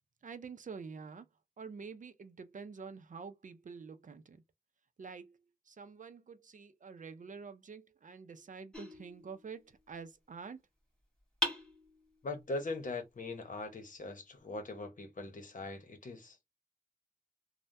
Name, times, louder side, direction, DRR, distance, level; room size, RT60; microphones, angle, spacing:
voice 1, 0.2-1.3 1.6-4.4 5.0-5.4 5.7-10.6, right 5 dB, 60° right, 0.5 m, -47 dB
sound 1, 8.7-9.9 11.4-12.4, left 1 dB, 5° left, 1.5 m, -40 dB
voice 2, 12.2-16.4, left 2 dB, 65° left, 0.9 m, -41 dB
3.3 x 2.1 x 2.6 m
wide cardioid pair, 75°, 15 cm